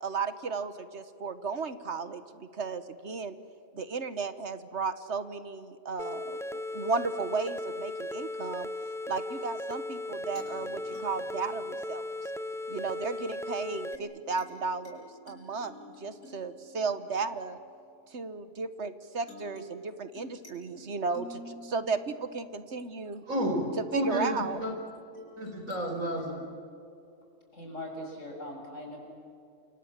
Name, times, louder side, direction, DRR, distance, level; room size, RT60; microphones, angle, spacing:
voice 1, 0.0-3.3 3.7-8.7 9.1-12.2 12.7-15.7 16.0-17.6 18.1-23.2 23.9-24.6, right 4 dB, 55° right, 12 dB, 1.4 m, -34 dB
sound 1, 6.0-14.0, left 1 dB, 5° left, 0.4 m, -37 dB
sound 2, 10.3-12.6 13.9-18.7 19.3-23.4 25.1-26.3, left 1 dB, 80° left, 6.4 m, -52 dB
voice 2, 23.3-23.6 23.9-24.7 25.4-26.4, equal, 75° right, 3 dB, 5.4 m, -31 dB
voice 3, 27.5-29.0, left 1 dB, 60° left, 0 dB, 7.1 m, -40 dB
28.5 x 25.5 x 7.4 m, 2.6 s
omnidirectional pair, 1.4 m